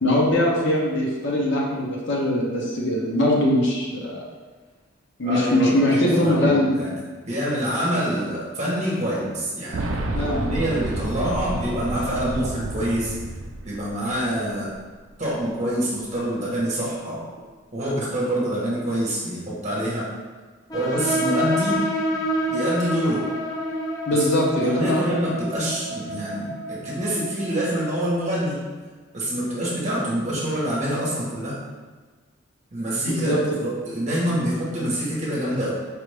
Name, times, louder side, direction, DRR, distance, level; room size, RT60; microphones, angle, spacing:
voice 1, 0.0-4.2 5.2-6.8 10.1-10.4 24.1-25.0 33.1-33.4, left 1 dB, 55° left, -3 dB, 0.7 m, -21 dB
voice 2, 5.2-6.9 7.2-13.1 13.6-14.7 15.2-17.2 17.7-20.1 20.7-21.8 22.5-23.3 24.1-24.2 24.6-28.6 29.1-31.6 32.7-35.7, right 1 dB, 35° right, -6 dB, 1.0 m, -26 dB
Boom, 9.7-14.5 14.7-14.8 15.9-16.0, right 2 dB, 70° right, 0.4 m, -30 dB
sound 1, 20.7-28.0, equal, 15° left, 0.5 m, -28 dB
4.7 x 2.5 x 3.3 m, 1.4 s
head